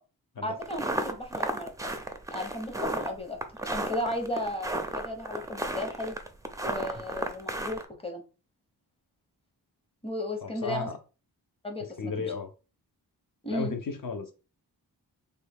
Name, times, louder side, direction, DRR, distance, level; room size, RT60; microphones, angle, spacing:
voice 1, 0.4-1.9 2.3-6.2 6.6-8.2 10.0-10.9 11.6-12.1 13.4-13.7, left 1 dB, 15° left, 4 dB, 0.7 m, -35 dB
sound 1, 0.6-7.9, right 1 dB, 10° right, 0.4 m, -33 dB
voice 2, 10.4-11.0 12.0-12.5 13.5-14.3, left 5 dB, 55° left, 7 dB, 0.6 m, -34 dB
3.3 x 2.2 x 3.4 m, 0.33 s
wide cardioid pair, 90°, 41 cm